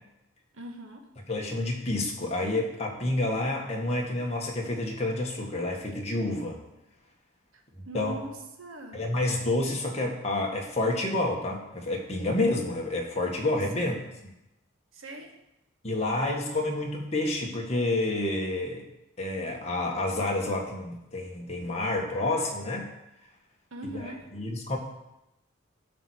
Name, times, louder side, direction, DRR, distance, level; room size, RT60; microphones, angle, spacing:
voice 1, 0.5-1.1 7.9-8.3 8.6-9.0 13.7-14.0 14.9-15.3 23.7-24.2, right 1 dB, 75° right, 4 dB, 1.4 m, -40 dB
voice 2, 1.3-6.6 7.9-8.2 8.9-14.0 15.8-18.9 19.2-22.9 24.3-24.8, left 2 dB, 30° left, -1 dB, 1.7 m, -29 dB
12.5 x 4.3 x 6.4 m, 0.91 s
head